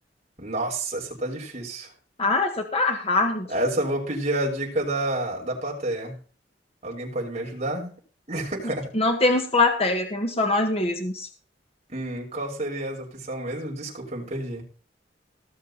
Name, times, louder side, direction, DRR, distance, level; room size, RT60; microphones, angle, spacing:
voice 1, 0.4-1.9 3.5-6.2 6.8-7.9 8.3-8.9 11.9-14.6, right 1 dB, 40° right, -3 dB, 6.3 m, -29 dB
voice 2, 2.2-3.5 8.9-11.3, left 2 dB, 35° left, 4 dB, 1.6 m, -23 dB
19.0 x 7.3 x 4.2 m, 0.40 s
head